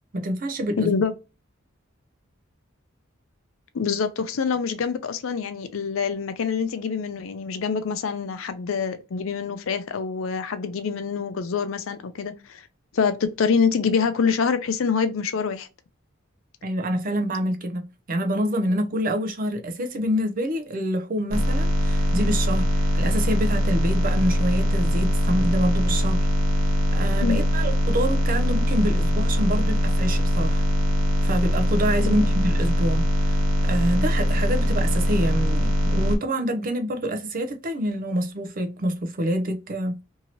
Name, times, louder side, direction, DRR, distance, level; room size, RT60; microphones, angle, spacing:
voice 1, 0.1-0.9 16.6-26.3 26.9-30.6 31.2-40.0, equal, 45° right, 0.5 m, -27 dB
voice 2, 0.8-1.1 3.7-12.6 12.9-15.7 27.2-27.5 32.0-32.2, left 6 dB, 75° left, 0.5 m, -25 dB
sound 1, 21.3-36.2, equal, 85° right, 0.8 m, -22 dB
2.8 x 2.7 x 2.8 m
head